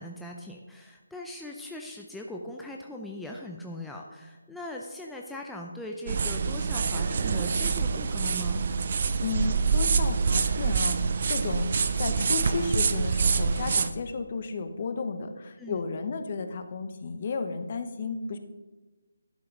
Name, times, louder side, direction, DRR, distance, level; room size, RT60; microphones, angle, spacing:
voice 1, 0.0-8.7 15.6-15.8, left 1 dB, 5° left, -1 dB, 0.5 m, -40 dB
sound 1, 6.1-13.9, right 5 dB, 45° right, 0.5 m, -26 dB
voice 2, 9.2-11.7 12.0-18.4, left 4 dB, 40° left, 8 dB, 0.9 m, -33 dB
11.5 x 5.7 x 5.3 m, 1.2 s
figure-of-eight pair, 160°, 0 cm